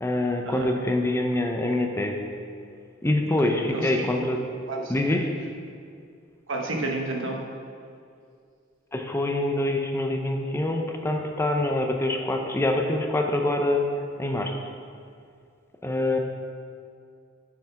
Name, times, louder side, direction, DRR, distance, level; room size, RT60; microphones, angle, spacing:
voice 1, 0.0-2.2 3.0-4.4 4.9-5.3 8.9-13.9 14.2-14.5 15.8-16.2, left 1 dB, 15° left, 3 dB, 0.5 m, -25 dB
voice 2, 3.4-4.1 4.7-4.9 6.5-7.4, right 2 dB, 80° right, 0 dB, 1.1 m, -31 dB
7.1 x 5.9 x 5.7 m, 2.3 s
head